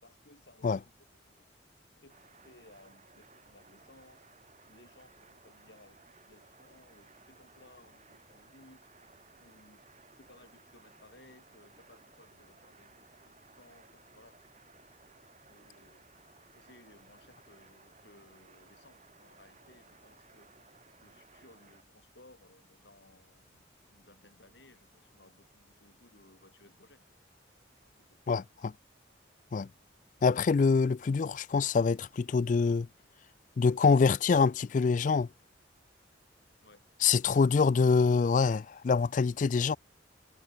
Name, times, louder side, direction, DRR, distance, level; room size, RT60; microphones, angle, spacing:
voice 1, 0.0-1.5 1.9-4.3 4.7-8.9 9.4-9.9 10.2-14.4 15.5-16.1 16.5-20.7 21.0-27.2 27.8-28.3 36.6-36.9, left 2 dB, 65° left, 5.8 m, -60 dB
sound 1, 2.1-21.8, right 4 dB, 35° right, 3.2 m, -60 dB
voice 2, 28.3-28.7 29.5-29.7 30.2-32.9 33.6-35.3 37.0-39.8, left 5 dB, 40° left, 0.3 m, -25 dB
head